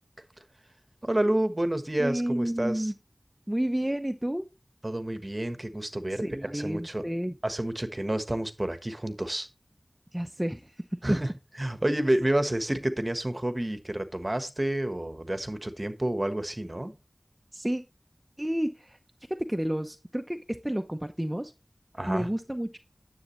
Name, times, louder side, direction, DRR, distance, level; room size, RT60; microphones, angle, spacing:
voice 1, 1.0-2.9 4.8-7.0 7.4-9.5 11.0-11.3 11.6-16.9 21.9-22.3, right 1 dB, 35° right, 9 dB, 1.3 m, -29 dB
voice 2, 2.0-2.9 3.5-4.5 6.2-7.3 10.1-10.7 11.1-11.2 17.5-17.8 18.4-19.0 19.5-21.5 22.1-22.8, right 1 dB, 10° right, 6 dB, 0.7 m, -30 dB
9.7 x 7.9 x 3.1 m, 0.27 s
wide cardioid pair, 45°, 0 cm